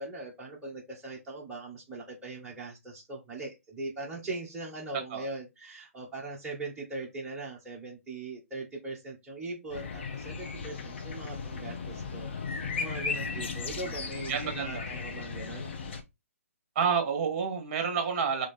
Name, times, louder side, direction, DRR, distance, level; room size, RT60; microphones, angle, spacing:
voice 1, 0.0-15.7, right 2 dB, 10° right, 1.3 m, -40 dB
sound 1, 9.7-16.0, left 5 dB, 50° left, 1.1 m, -36 dB
voice 2, 13.1-13.8 14.3-14.8 16.8-18.5, right 6 dB, 35° right, 1.7 m, -30 dB
4.0 x 3.1 x 3.5 m
figure-of-eight pair, 140°, 8 cm